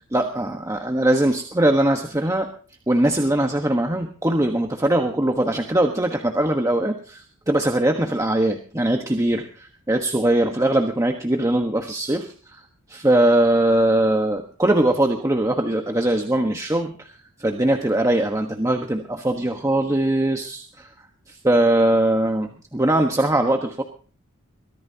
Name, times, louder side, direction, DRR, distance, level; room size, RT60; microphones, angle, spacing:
voice 1, 0.1-2.5 2.9-20.9 21.3-23.8, right 1 dB, 15° right, 3 dB, 1.2 m, -21 dB
23.0 x 15.0 x 2.8 m, 0.40 s
head